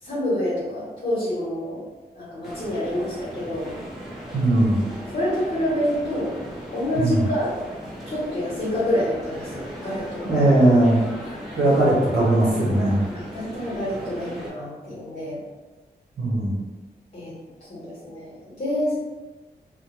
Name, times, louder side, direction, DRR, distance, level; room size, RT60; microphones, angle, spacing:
voice 1, 0.0-1.8 2.1-3.8 5.1-6.3 6.7-7.5 8.0-10.5 11.6-11.8 13.1-15.4 17.1-19.0, left 1 dB, 40° left, -9 dB, 1.0 m, -27 dB
sound 1, 2.4-14.5, equal, ahead, 0.8 m, -37 dB
voice 2, 4.3-4.8 7.0-7.2 10.3-11.0 11.3-13.1 16.2-16.6, right 1 dB, 80° right, -8 dB, 0.9 m, -19 dB
2.2 x 2.1 x 3.0 m, 1.2 s
cardioid pair, 75°, 17 cm